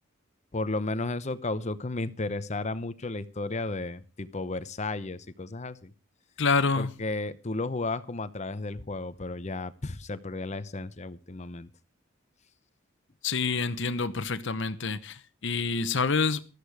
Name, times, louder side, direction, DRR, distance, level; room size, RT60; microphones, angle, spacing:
voice 1, 0.5-5.9 6.7-11.7, left 2 dB, 35° left, 0.8 m, -33 dB
voice 2, 6.4-6.9 13.2-16.4, left 4 dB, 60° left, 1.0 m, -27 dB
13.5 x 13.5 x 4.8 m
head